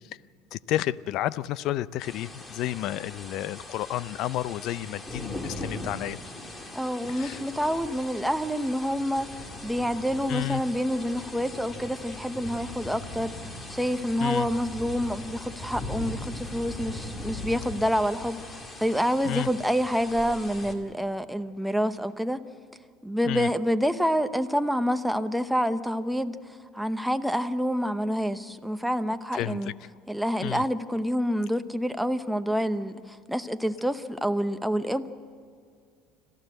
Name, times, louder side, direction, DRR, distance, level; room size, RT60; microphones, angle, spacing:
voice 1, 0.5-6.2 7.1-7.4 10.3-10.6 14.2-14.5 19.2-19.5 23.2-23.5 29.3-29.7 30.4-30.6, left 14 dB, 60° left, 19 dB, 0.5 m, -31 dB
sound 1, 2.0-20.8, left 1 dB, 20° left, 2.2 m, -40 dB
voice 2, 6.7-9.3 9.6-22.4 23.0-26.4 26.7-29.7 30.1-35.1, equal, ahead, 9 dB, 0.8 m, -27 dB
26.0 x 14.5 x 7.9 m, 2.2 s
cardioid pair, 130°, 0 cm